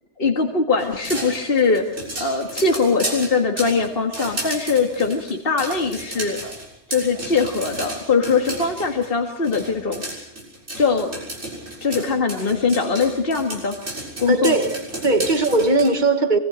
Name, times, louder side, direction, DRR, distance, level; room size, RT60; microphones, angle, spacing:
voice 1, 0.2-1.8 2.2-6.4 6.9-10.0 10.8-11.1 11.8-13.7 14.2-14.6, left 4 dB, 55° left, 2.1 m, -21 dB
sound 1, 0.8-9.1 9.4-15.9, right 1 dB, 75° right, 7.2 m, -33 dB
voice 2, 14.3-16.4, right 2 dB, 40° right, 2.0 m, -19 dB
25.0 x 22.5 x 6.4 m
omnidirectional pair, 1.2 m